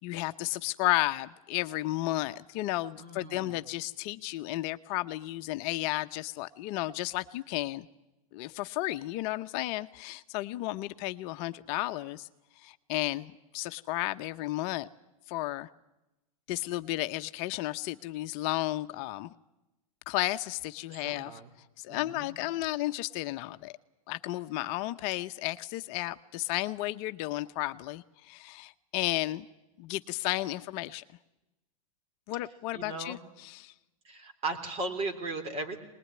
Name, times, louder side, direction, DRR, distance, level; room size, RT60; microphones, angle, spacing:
voice 1, 0.0-7.9 8.3-12.3 12.6-14.9 15.3-15.7 16.5-19.3 20.1-21.4 21.8-23.7 24.1-29.5 29.8-31.0 32.3-33.7, left 17 dB, 50° left, 9 dB, 0.8 m, -33 dB
voice 2, 3.0-3.6 20.9-21.5 21.9-22.4 32.7-33.2 34.1-35.8, right 3 dB, 35° right, 7 dB, 3.6 m, -37 dB
23.5 x 20.5 x 9.6 m, 0.98 s
hypercardioid pair, 125°, 19 cm